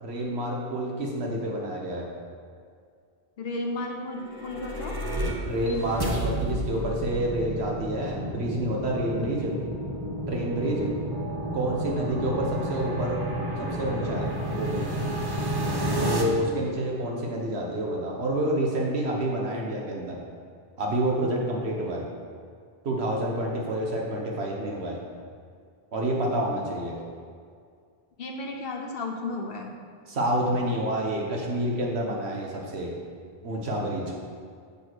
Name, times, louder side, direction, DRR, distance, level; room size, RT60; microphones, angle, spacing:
voice 1, 0.0-2.1 5.4-9.6 10.3-10.9 11.5-13.2 13.6-15.0 16.0-20.2 20.8-22.1 22.8-25.0 25.9-27.0 30.1-32.9 33.4-34.0, right 1 dB, 90° right, -1 dB, 1.4 m, -28 dB
voice 2, 3.4-5.0 28.2-29.7, left 2 dB, 65° left, 2 dB, 1.2 m, -33 dB
sound 1, 4.2-16.2, right 1 dB, 25° right, 0.8 m, -31 dB
7.2 x 5.4 x 6.1 m, 2.1 s
omnidirectional pair, 1.1 m